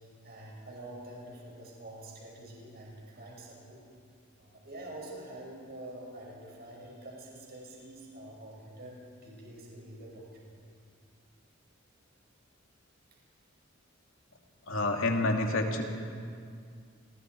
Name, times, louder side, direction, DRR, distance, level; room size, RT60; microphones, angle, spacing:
voice 1, 0.2-3.8 4.4-10.5, right 1 dB, 50° right, -2 dB, 5.7 m, -46 dB
voice 2, 14.7-15.8, left 2 dB, 80° left, 2 dB, 2.5 m, -28 dB
29.5 x 22.5 x 4.6 m, 2.2 s
head